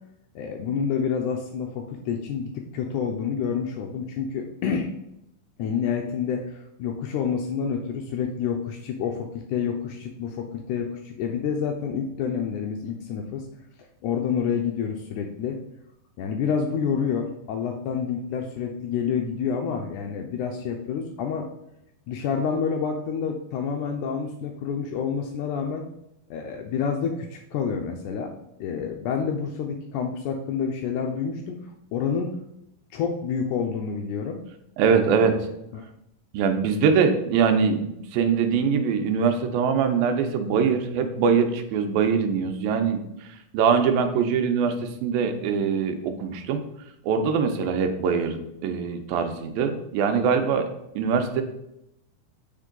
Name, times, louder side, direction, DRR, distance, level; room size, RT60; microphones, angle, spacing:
voice 1, 0.4-4.9 5.6-13.5 13.8-15.6 16.2-21.5 22.1-25.9 26.3-28.3 28.6-31.6 31.9-32.4 32.9-34.4 34.8-35.9, left 6 dB, 85° left, 3 dB, 1.7 m, -28 dB
voice 2, 34.8-35.3 36.3-46.6 47.0-50.7 51.0-51.4, right 6 dB, 85° right, 6 dB, 2.5 m, -23 dB
8.3 x 4.5 x 3.8 m, 0.81 s
omnidirectional pair, 4.2 m